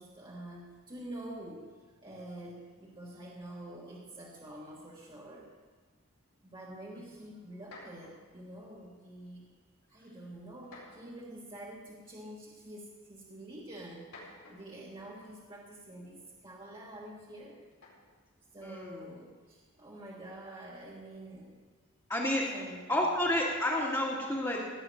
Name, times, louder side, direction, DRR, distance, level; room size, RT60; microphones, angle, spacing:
voice 1, 0.0-1.7 2.0-5.5 6.4-9.4 9.9-14.1 14.5-17.6 18.5-21.5 22.3-23.2, right 1 dB, 25° right, -4 dB, 1.6 m, -47 dB
sound 1, 7.6-8.4 9.3-9.6 10.6-11.3 12.5-12.6 13.9-15.4 17.7-18.2, left 2 dB, 70° left, 4.7 m, -53 dB
voice 2, 18.6-19.1 22.1-22.5 22.9-24.6, left 1 dB, 15° left, -6 dB, 2.0 m, -30 dB
17.0 x 6.1 x 9.2 m, 1.5 s
head